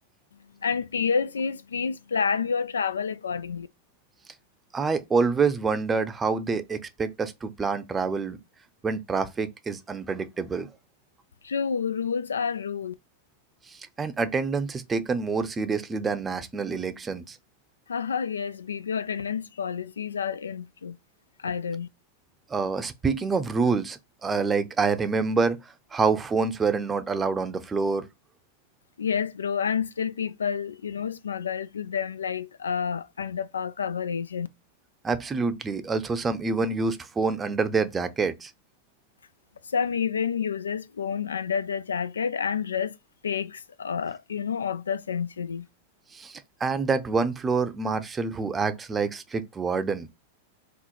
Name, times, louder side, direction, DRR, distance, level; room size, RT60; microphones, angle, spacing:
voice 1, 0.6-3.7 11.4-12.9 17.9-21.0 21.4-21.9 29.0-34.5 39.7-42.9 43.2-45.7, left 6 dB, 90° left, 0.3 m, -29 dB
voice 2, 4.7-8.4 8.8-10.7 13.7-17.4 22.5-28.1 35.0-38.5 46.1-50.1, right 4 dB, 20° right, 0.5 m, -27 dB
3.7 x 2.1 x 4.3 m
hypercardioid pair, 105°, 0 cm